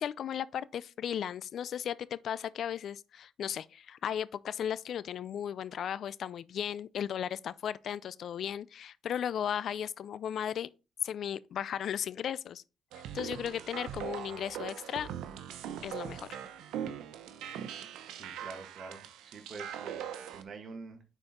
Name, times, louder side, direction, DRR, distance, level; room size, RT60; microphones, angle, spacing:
voice 1, 0.0-10.7 11.0-12.6 13.1-15.1 15.8-16.4, left 9 dB, 65° left, 0.4 m, -36 dB
sound 1, 12.9-20.4, right 9 dB, 90° right, 0.8 m, -41 dB
voice 2, 18.0-21.0, right 4 dB, 55° right, 1.7 m, -47 dB
9.6 x 4.5 x 3.8 m
cardioid pair, 90°, 0 cm